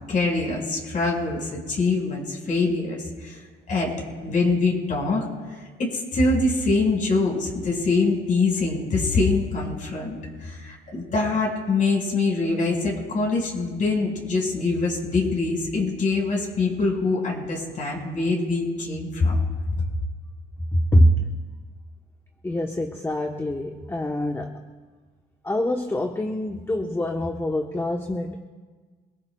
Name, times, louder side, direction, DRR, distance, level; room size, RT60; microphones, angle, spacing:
voice 1, 0.1-3.4 3.7-3.9 4.2-5.2 5.8-19.4, left 3 dB, 45° left, -1 dB, 4.9 m, -24 dB
voice 2, 20.7-21.3 22.4-24.5 25.4-28.4, equal, 15° left, 3 dB, 0.9 m, -24 dB
27.0 x 18.5 x 2.3 m, 1.4 s
cardioid pair, 115°, 19 cm